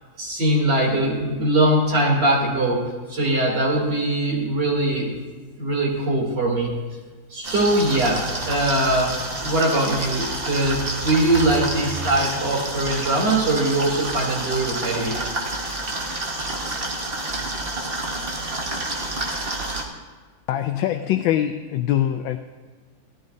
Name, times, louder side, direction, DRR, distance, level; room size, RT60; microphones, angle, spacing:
voice 1, 0.2-5.1 5.6-6.7 7.3-9.1 9.4-15.2, right 1 dB, 65° right, -3 dB, 3.6 m, -21 dB
sound 1, 7.4-19.8, right 2 dB, 35° right, 1.4 m, -29 dB
voice 2, 20.5-22.4, left 11 dB, 90° left, 6 dB, 1.3 m, -23 dB
17.0 x 14.0 x 2.7 m, 1.4 s
omnidirectional pair, 2.0 m